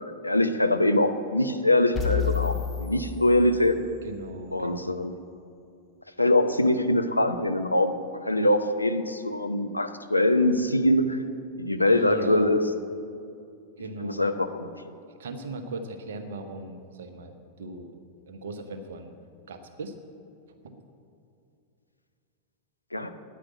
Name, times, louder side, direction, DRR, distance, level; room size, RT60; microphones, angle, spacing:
voice 1, 0.0-3.8 4.5-5.2 6.2-11.2 11.6-12.6 14.0-14.9 22.9-23.1, left 1 dB, 85° left, 8 dB, 0.7 m, -23 dB
sound 1, 1.9-4.0, left 9 dB, 20° left, 1.9 m, -30 dB
voice 2, 4.0-5.0 11.8-12.5 13.8-14.2 15.2-17.9 18.3-19.1 19.5-19.9 20.6-20.8, right 2 dB, 60° right, 6 dB, 1.1 m, -38 dB
10.0 x 9.5 x 8.6 m, 2.5 s
figure-of-eight pair, 90°, 0 cm